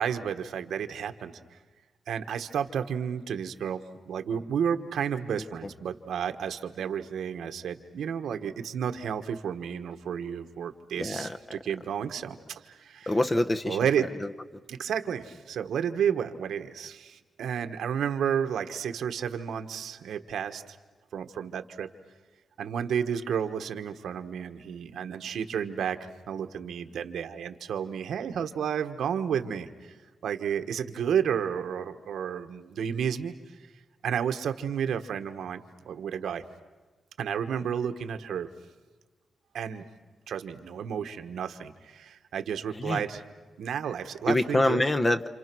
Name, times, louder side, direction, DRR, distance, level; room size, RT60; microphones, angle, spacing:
voice 1, 0.0-1.3 2.1-13.1 13.7-14.1 14.7-20.8 21.1-21.9 22.6-26.0 26.3-29.9 30.2-33.3 34.0-36.4 37.2-38.5 39.5-39.9 40.3-43.2 43.6-44.8, right 8 dB, 90° right, 7 dB, 1.4 m, -31 dB
voice 2, 11.0-11.4 13.1-13.8 14.2-14.3 42.7-43.0 44.3-45.3, left 1 dB, 20° left, 9 dB, 0.9 m, -25 dB
30.0 x 27.5 x 6.2 m, 1.3 s
wide cardioid pair, 135°, 0 cm